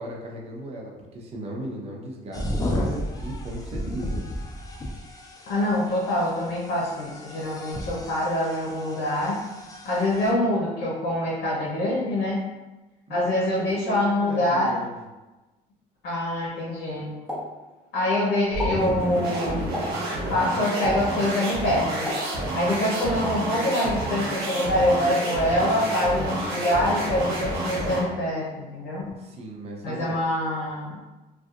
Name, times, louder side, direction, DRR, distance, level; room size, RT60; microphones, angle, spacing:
voice 1, 0.0-4.3 13.1-15.0 29.2-30.2, right 1 dB, 35° right, -1 dB, 0.6 m, -36 dB
sound 1, 2.3-10.3, left 1 dB, 20° left, 0.4 m, -34 dB
voice 2, 5.5-9.4 9.8-12.5 13.1-14.8 16.0-17.2 17.9-19.8 20.3-22.1 22.5-29.2 29.8-31.0, left 1 dB, 65° left, -5 dB, 0.8 m, -25 dB
Explosion, 17.3-18.1 18.5-18.9 19.7-20.1 20.8-21.2 22.1-22.8 23.2-23.5, left 1 dB, 5° right, 1.0 m, -33 dB
sound 2, 18.5-28.2, right 1 dB, 75° right, 0.8 m, -29 dB
2.6 x 2.3 x 2.4 m, 1.1 s
cardioid pair, 110°, 17 cm